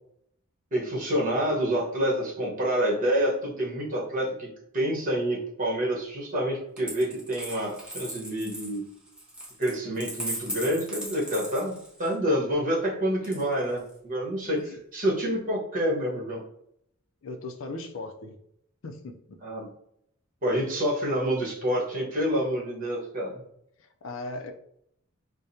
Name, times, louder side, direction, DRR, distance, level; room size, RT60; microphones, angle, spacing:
voice 1, 0.7-4.5 4.7-8.8 9.6-11.7 12.0-14.6 14.9-16.4 19.4-19.7 20.4-23.4, equal, 40° right, -3 dB, 1.3 m, -27 dB
Coin (dropping), 6.8-12.1 13.2-13.9, equal, 5° right, 0.6 m, -38 dB
voice 2, 17.2-18.4 18.8-19.4 23.8-24.5, left 2 dB, 65° left, 5 dB, 0.5 m, -38 dB
4.8 x 2.1 x 2.8 m, 0.72 s
head